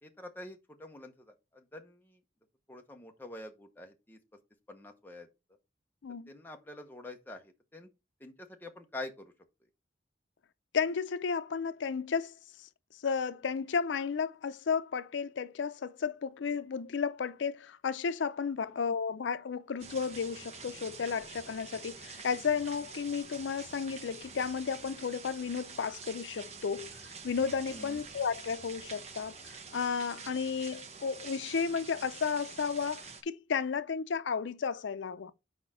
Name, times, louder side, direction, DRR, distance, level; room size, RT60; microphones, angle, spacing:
voice 1, 0.0-2.2 2.7-4.2 4.7-5.3 6.3-7.9 8.2-9.3 18.6-18.8 27.7-28.0, left 2 dB, 10° left, 0.8 m, -46 dB
voice 2, 10.7-12.7 13.0-26.9 27.2-35.3, left 6 dB, 85° left, 0.5 m, -33 dB
sound 1, 19.8-33.2, right 5 dB, 35° right, 0.8 m, -47 dB
4.9 x 4.3 x 5.6 m
head